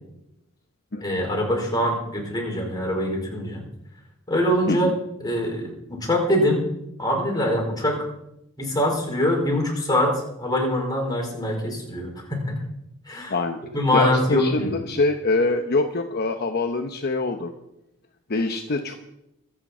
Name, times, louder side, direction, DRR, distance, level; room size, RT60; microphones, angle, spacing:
voice 1, 1.0-3.6 4.3-4.9 5.2-6.6 7.0-8.0 8.6-10.1 10.4-12.4 13.1-13.3 13.7-14.8, left 1 dB, 20° left, 0 dB, 4.3 m, -23 dB
voice 2, 13.9-17.5 18.3-19.0, left 3 dB, 50° left, 5 dB, 0.9 m, -24 dB
24.5 x 8.9 x 4.4 m, 0.84 s
head